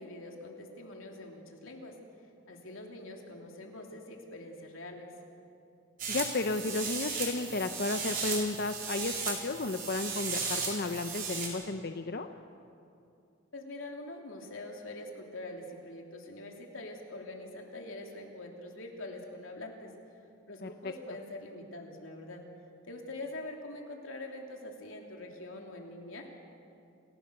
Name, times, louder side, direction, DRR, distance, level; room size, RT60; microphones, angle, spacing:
voice 1, 0.0-1.9 2.5-5.1 13.5-19.9 20.5-22.4 22.9-26.3, left 2 dB, 85° left, 1 dB, 3.0 m, -44 dB
sound 1, 6.0-11.5, right 5 dB, 45° right, 4.2 m, -36 dB
voice 2, 6.1-12.3 20.6-20.7, left 3 dB, 50° left, 7 dB, 0.7 m, -33 dB
28.5 x 16.5 x 6.8 m, 2.6 s
head